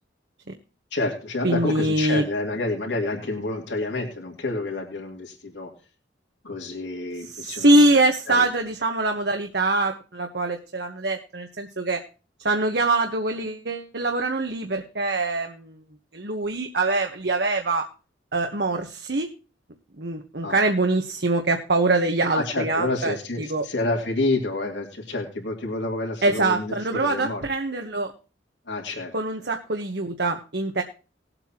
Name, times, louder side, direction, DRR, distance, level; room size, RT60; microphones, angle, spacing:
voice 1, 0.9-5.7 6.4-8.0 8.3-8.4 20.4-20.6 22.3-27.4 28.7-29.1 29.4-29.5, left 2 dB, 75° left, 0 dB, 2.6 m, -29 dB
voice 2, 1.4-2.2 7.2-12.0 12.4-15.8 16.1-17.8 18.3-19.3 20.0-23.6 26.2-28.1 29.1-30.8, right 2 dB, 60° right, 4 dB, 1.1 m, -23 dB
20.0 x 8.0 x 2.9 m, 0.34 s
head